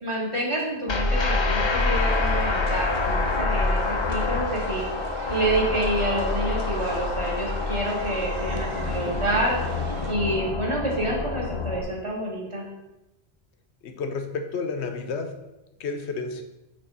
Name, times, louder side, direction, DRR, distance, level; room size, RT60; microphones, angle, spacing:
voice 1, 0.0-4.8 5.3-9.6 10.1-12.7, right 1 dB, 25° right, -3 dB, 1.5 m, -28 dB
sound 1, 0.9-11.8, left 3 dB, 35° left, 0.5 m, -26 dB
sound 2, 1.9-10.1, right 5 dB, 60° right, 0.8 m, -38 dB
voice 2, 13.8-15.4 15.8-16.4, left 4 dB, 75° left, 6 dB, 1.0 m, -31 dB
6.6 x 3.3 x 5.3 m, 0.96 s
omnidirectional pair, 1.1 m